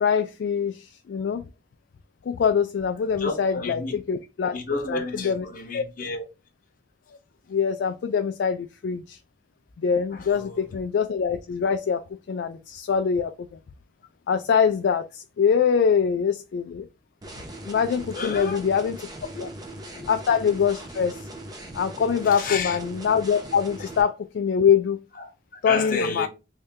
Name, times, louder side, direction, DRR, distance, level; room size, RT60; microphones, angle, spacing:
voice 1, 0.0-1.4 2.3-4.6 4.9-5.4 5.7-5.8 7.5-9.2 9.8-13.6 14.3-16.9 17.6-19.0 19.4-19.5 20.1-21.2 21.7-25.0 25.6-26.3, left 7 dB, 65° left, 0.3 m, -24 dB
voice 2, 3.2-4.0 4.5-6.2 10.1-10.7 18.1-18.6 19.3-19.5 19.8-20.5 22.2-22.8 25.2-26.3, left 3 dB, 45° left, 0.8 m, -31 dB
sound 1, 17.2-24.0, right 1 dB, 20° right, 0.7 m, -40 dB
3.2 x 2.7 x 3.5 m
head